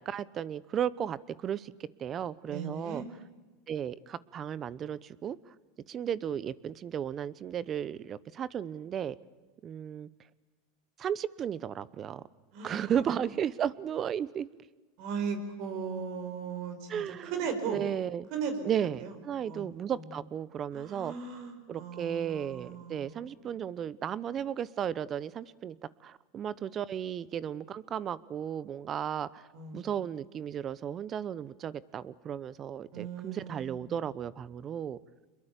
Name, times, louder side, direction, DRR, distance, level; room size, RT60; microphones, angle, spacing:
voice 1, 0.0-1.7 2.0-3.0 3.7-5.4 5.9-9.2 9.6-10.1 11.0-12.2 12.6-14.6 16.9-17.3 17.6-18.3 18.6-21.1 21.7-25.7 26.0-29.4 29.7-35.0, right 9 dB, 35° right, 20 dB, 1.0 m, -34 dB
voice 2, 2.5-3.1 12.5-12.9 15.0-17.8 18.3-18.6 19.0-19.1 19.4-20.0 20.7-23.2 29.5-29.9 32.9-33.8, right 6 dB, 60° right, 8 dB, 4.9 m, -37 dB
25.5 x 22.0 x 8.5 m, 1.2 s
supercardioid pair, 120°, 0 cm